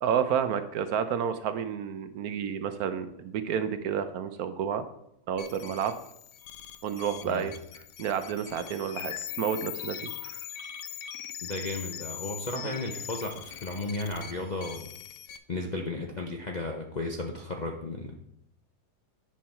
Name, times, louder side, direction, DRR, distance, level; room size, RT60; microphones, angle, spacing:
voice 1, 0.0-4.8 5.3-5.9 6.8-7.5 8.0-10.4 12.6-12.7, right 8 dB, 70° right, 10 dB, 1.0 m, -30 dB
sound 1, 5.4-15.4, left 10 dB, 85° left, 1.2 m, -41 dB
voice 2, 11.4-14.9 15.5-18.2, left 2 dB, 45° left, 0 dB, 0.5 m, -34 dB
9.3 x 5.6 x 4.3 m, 0.76 s
omnidirectional pair, 1.8 m